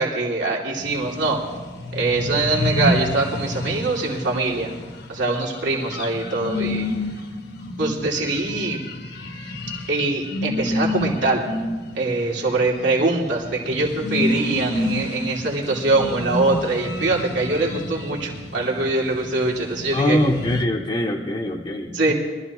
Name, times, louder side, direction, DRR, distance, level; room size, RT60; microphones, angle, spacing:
voice 1, 0.0-1.4 1.9-4.7 5.1-6.9 7.8-8.8 9.9-11.4 11.9-20.2 21.9-22.1, right 2 dB, 75° right, -3 dB, 2.8 m, -23 dB
sound 1, 0.7-20.6, left 1 dB, 65° left, 1.2 m, -29 dB
voice 2, 19.9-22.1, left 1 dB, 30° left, -1 dB, 0.9 m, -23 dB
23.5 x 13.0 x 3.1 m, 1.3 s
head